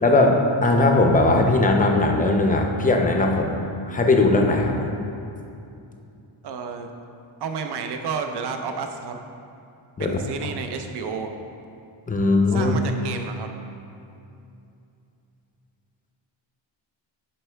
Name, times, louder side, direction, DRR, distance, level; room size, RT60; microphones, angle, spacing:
voice 1, 0.0-0.4 0.6-3.6 3.9-4.9 10.0-10.2 12.1-12.7, left 2 dB, 15° left, 2 dB, 0.5 m, -19 dB
voice 2, 6.4-6.9 7.4-9.2 10.0-11.3 12.5-13.5, right 5 dB, 55° right, 5 dB, 0.6 m, -31 dB
11.0 x 4.5 x 3.3 m, 2.6 s
wide cardioid pair, 150°, 49 cm